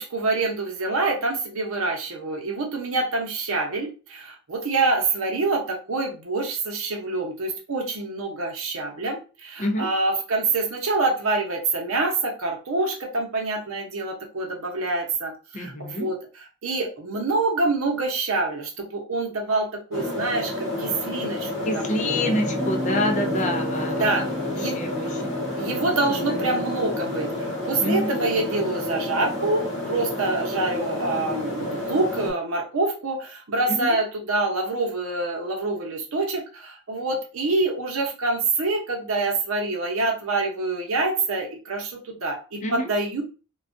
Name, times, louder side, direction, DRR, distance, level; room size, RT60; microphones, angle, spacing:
voice 1, 0.0-16.2 16.6-22.2 24.0-24.3 24.5-24.8 25.6-43.2, right 3 dB, 80° right, 1 dB, 0.7 m, -26 dB
voice 2, 9.6-9.9 15.5-16.1 21.6-24.2 24.6-25.6 26.1-26.6 27.8-28.2 33.7-34.0 42.6-42.9, left 1 dB, 35° left, 4 dB, 0.5 m, -28 dB
sound 1, 19.9-32.3, left 2 dB, 65° left, 1.0 m, -30 dB
Piano, 22.1-29.9, equal, 10° right, 0.6 m, -34 dB
2.3 x 2.2 x 2.5 m, 0.35 s
head